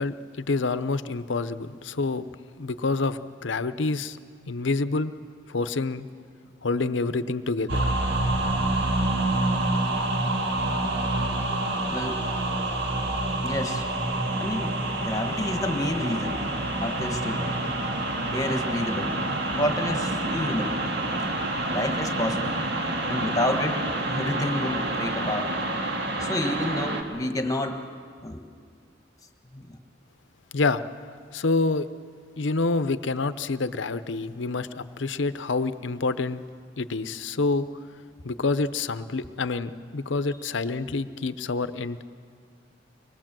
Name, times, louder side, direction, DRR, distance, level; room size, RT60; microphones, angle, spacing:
voice 1, 0.0-2.2 2.6-4.2 4.5-5.1 5.5-6.1 6.6-7.8 30.5-30.8 31.3-31.9 32.4-36.4 36.8-37.7 38.2-42.0, left 3 dB, 70° left, 12 dB, 0.8 m, -27 dB
sound 1, 7.7-27.0, right 2 dB, 60° right, 2.2 m, -27 dB
voice 2, 11.9-12.2 13.4-13.9 14.3-17.5 18.3-19.2 19.4-20.8 21.7-22.6 23.1-25.5 26.2-27.8 28.2-28.4 29.5-29.7, left 1 dB, 20° left, 5 dB, 1.4 m, -29 dB
24.0 x 21.0 x 7.6 m, 2.1 s
head